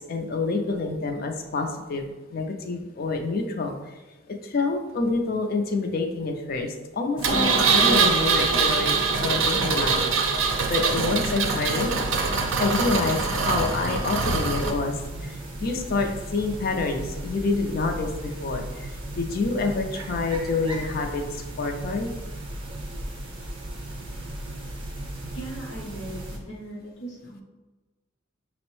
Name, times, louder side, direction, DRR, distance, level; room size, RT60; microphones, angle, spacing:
voice 1, 0.1-2.0 2.3-3.8 4.4-10.0 10.4-11.9 12.6-15.0 15.2-18.9 19.2-22.1, left 3 dB, 50° left, 4 dB, 0.4 m, -27 dB
sound 1, 7.2-26.4, right 1 dB, 25° right, 0.6 m, -36 dB
Engine, 7.2-14.7, right 4 dB, 75° right, 0.5 m, -23 dB
voice 2, 25.3-27.4, right 2 dB, 70° left, -3 dB, 0.8 m, -38 dB
5.2 x 2.0 x 3.0 m, 1.2 s
head